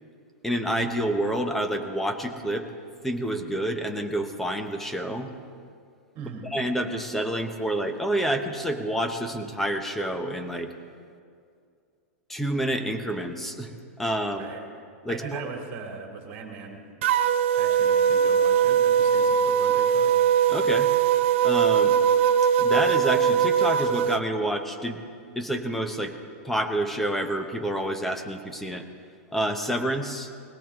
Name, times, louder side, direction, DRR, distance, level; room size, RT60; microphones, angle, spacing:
voice 1, 0.4-2.7 3.0-5.3 6.4-10.7 12.3-14.5 15.0-15.4 20.5-20.9 21.4-22.0 22.6-25.0 25.4-26.2 26.4-28.8 29.3-30.3, right 1 dB, 5° left, 6 dB, 0.8 m, -28 dB
voice 2, 6.1-6.5 14.4-14.7 15.1-16.8 17.5-20.2, right 5 dB, 30° right, 1 dB, 2.6 m, -39 dB
sound 1, 17.0-24.2, right 8 dB, 50° right, 0.5 m, -21 dB
20.0 x 16.5 x 3.6 m, 2.3 s
supercardioid pair, 165°, 8 cm